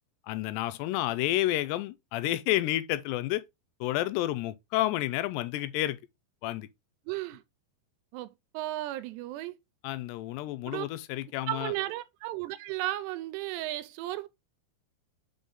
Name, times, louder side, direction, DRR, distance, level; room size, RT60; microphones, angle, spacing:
voice 1, 0.3-3.4 3.8-6.0 6.4-6.7 9.8-11.7, left 15 dB, 90° left, 2.7 m, -30 dB
voice 2, 7.1-7.4 8.1-8.3 8.5-9.5 10.7-10.9 11.5-14.3, right 16 dB, 85° right, 2.7 m, -34 dB
5.5 x 5.4 x 3.5 m
omnidirectional pair, 4.9 m